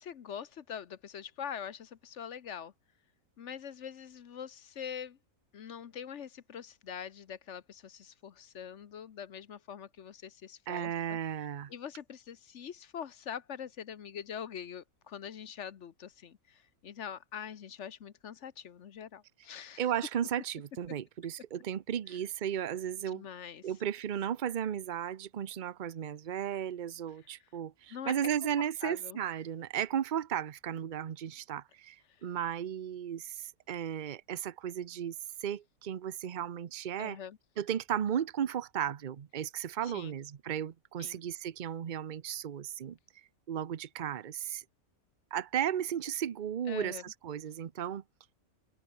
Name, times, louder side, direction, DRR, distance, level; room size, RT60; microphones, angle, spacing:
voice 1, 0.0-2.7 3.4-5.2 5.5-11.2 11.7-19.8 22.1-22.2 23.1-23.6 27.9-28.1 28.6-29.2 32.2-32.3 37.0-37.4 39.8-40.2 41.0-41.2 46.7-47.0, left 8 dB, 55° left, 1.2 m, -44 dB
voice 2, 10.7-11.7 19.8-23.2 23.6-35.2 35.4-37.2 37.6-43.0 43.5-44.6 45.3-48.0, right 9 dB, 45° right, 0.7 m, -35 dB
omnidirectional pair, 1.6 m